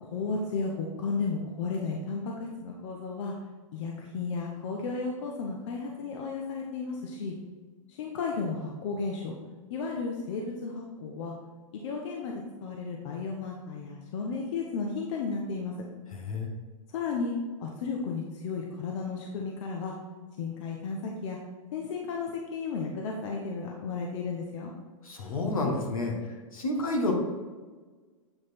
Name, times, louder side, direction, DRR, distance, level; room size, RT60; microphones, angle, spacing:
voice 1, 0.0-3.3 3.7-7.3 8.0-9.3 9.7-11.3 11.7-12.3 12.6-15.7 16.9-17.3 17.6-19.9 20.4-21.4 21.7-24.7, left 4 dB, 60° left, 0 dB, 0.9 m, -33 dB
voice 2, 16.1-16.5 25.0-26.1 26.5-27.1, left 2 dB, 80° left, 1 dB, 1.5 m, -29 dB
7.9 x 3.1 x 4.4 m, 1.4 s
hypercardioid pair, 120°, 17 cm